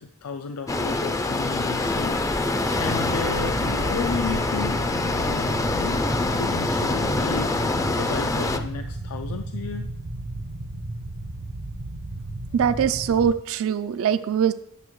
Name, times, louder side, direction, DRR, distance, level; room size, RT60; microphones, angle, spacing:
voice 1, 0.0-2.2 2.5-6.0 6.4-9.9, left 5 dB, 85° left, 7 dB, 0.4 m, -33 dB
sound 1, 0.7-8.6, left 2 dB, 15° left, 0.4 m, -25 dB
sound 2, 2.7-13.3, right 2 dB, 90° right, 0.8 m, -34 dB
voice 2, 12.5-14.5, right 8 dB, 65° right, 12 dB, 0.3 m, -22 dB
9.8 x 6.4 x 3.1 m, 0.77 s
head